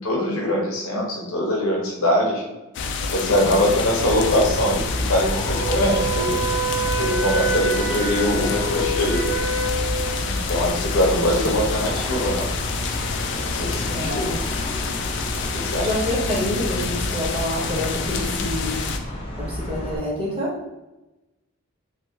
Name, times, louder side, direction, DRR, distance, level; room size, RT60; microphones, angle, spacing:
voice 1, 0.0-2.4 3.1-6.4 7.0-9.2 10.2-12.5 13.6-14.4 15.5-15.9 18.1-18.4, left 1 dB, 80° left, -1 dB, 0.9 m, -23 dB
sound 1, 2.7-19.0, left 4 dB, 55° left, 0.4 m, -28 dB
voice 2, 3.2-3.7 11.1-11.6 13.9-14.3 15.8-18.7 19.0-20.6, equal, 25° right, -6 dB, 1.0 m, -28 dB
sound 2, 3.8-20.0, left 1 dB, 25° left, 0.7 m, -32 dB
Wind instrument woodwind instrument, 5.5-10.3, right 3 dB, 65° right, 0.7 m, -27 dB
3.1 x 3.1 x 2.8 m, 1.0 s
head